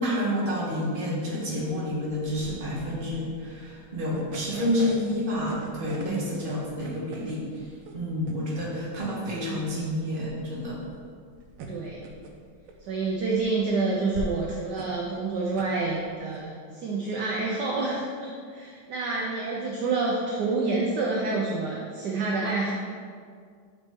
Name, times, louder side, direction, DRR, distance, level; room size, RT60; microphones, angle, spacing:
voice 1, 0.0-7.5 7.9-10.8, left 1 dB, 30° right, -5 dB, 1.4 m, -29 dB
sound 1, 2.2-16.4, right 2 dB, 85° right, 1.6 m, -43 dB
voice 2, 11.7-12.0 12.9-22.7, right 3 dB, 65° right, -3 dB, 1.1 m, -28 dB
8.3 x 4.1 x 3.6 m, 2.1 s
omnidirectional pair, 2.3 m